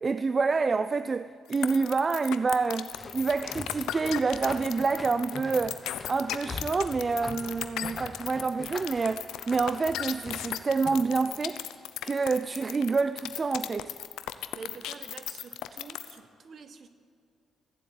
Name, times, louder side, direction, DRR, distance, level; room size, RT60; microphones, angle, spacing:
voice 1, 0.0-5.8 6.1-11.6 12.0-13.9, right 4 dB, 35° right, 0.3 m, -27 dB
sound 1, 1.5-16.2, left 12 dB, 85° left, 0.6 m, -36 dB
sound 2, 2.9-11.1, left 3 dB, 30° left, 1.1 m, -43 dB
voice 2, 14.5-16.9, right 5 dB, 50° right, 1.0 m, -46 dB
14.5 x 7.6 x 9.0 m
cardioid pair, 90°, 0 cm